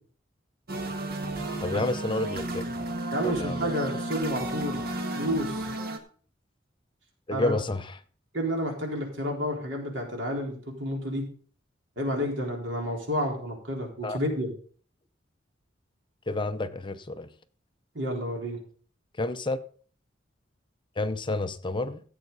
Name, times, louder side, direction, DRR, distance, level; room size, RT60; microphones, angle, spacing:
sound 1, 0.7-6.0, right 1 dB, 55° right, 1.6 m, -33 dB
voice 1, 1.6-2.6 3.2-3.6 7.3-8.0 14.0-14.2 16.3-17.3 19.2-19.6 21.0-22.0, left 2 dB, 25° left, 11 dB, 0.6 m, -29 dB
voice 2, 3.1-4.8 5.1-5.7 7.3-7.5 8.3-11.2 12.0-14.5 17.9-18.6, equal, 75° right, 0 dB, 4.3 m, -30 dB
15.5 x 8.1 x 4.0 m, 0.44 s
head